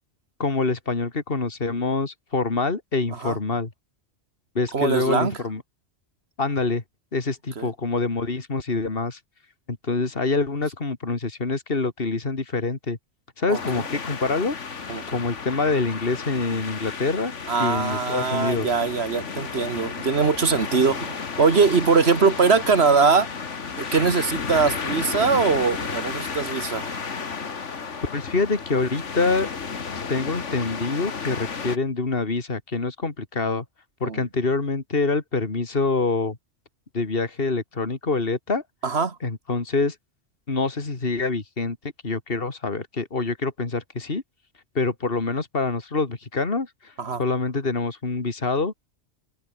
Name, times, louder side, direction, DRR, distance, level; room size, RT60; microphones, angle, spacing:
voice 1, 0.4-3.7 4.5-5.6 6.4-6.8 7.1-9.2 9.7-13.0 13.4-14.6 15.1-17.3 17.6-18.7 28.1-29.5 30.1-33.6 34.0-36.4 36.9-38.6 39.2-40.0 40.5-41.8 42.0-44.2 44.7-46.9 47.2-48.9, left 3 dB, 50° left, 2.8 m, -25 dB
voice 2, 4.7-5.4 7.6-7.7 13.5-13.8 14.9-15.2 17.5-23.3 23.8-27.0 34.0-34.2 38.8-39.2 47.0-47.2, right 5 dB, 65° right, 2.0 m, -22 dB
sound 1, 13.5-31.8, left 5 dB, 90° left, 2.1 m, -33 dB
omnidirectional pair, 1.2 m